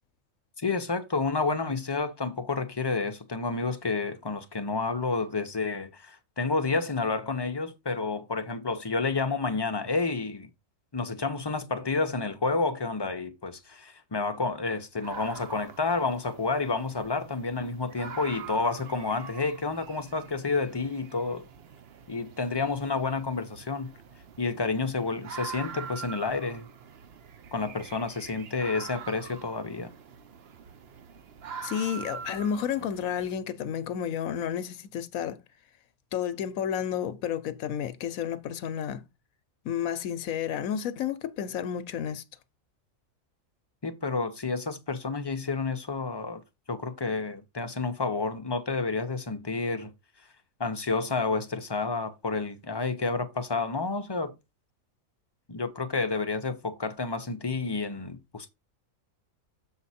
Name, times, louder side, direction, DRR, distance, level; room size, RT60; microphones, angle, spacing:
voice 1, 0.6-10.5 10.9-21.5 22.1-23.9 24.4-26.7 27.5-29.9 43.8-46.4 46.7-49.9 50.6-54.3 55.5-58.5, left 3 dB, 30° left, 0.5 m, -30 dB
sound 1, 15.0-33.4, right 6 dB, 55° right, 0.9 m, -45 dB
voice 2, 31.6-35.4 36.1-39.0 39.6-42.2, left 9 dB, 85° left, 1.1 m, -31 dB
7.3 x 4.6 x 4.1 m
omnidirectional pair, 1.4 m